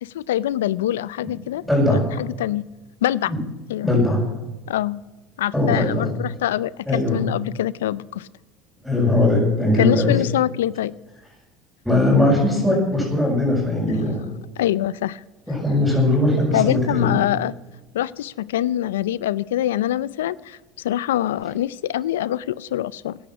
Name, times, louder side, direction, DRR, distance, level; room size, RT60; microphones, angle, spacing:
voice 1, 0.0-1.6 1.9-2.6 3.0-3.3 3.7-3.9 4.7-5.0 5.4-8.3 9.8-10.9 14.6-15.2 16.5-17.5 17.9-23.2, left 13 dB, 90° left, 20 dB, 0.4 m, -24 dB
voice 2, 1.7-2.0 3.3-3.4 3.8-4.2 5.5-6.1 6.9-7.2 8.8-10.1 11.8-14.3 15.5-17.2, left 2 dB, ahead, -7 dB, 6.4 m, -19 dB
16.5 x 11.0 x 6.0 m, 1.1 s
supercardioid pair, 90°, 0 cm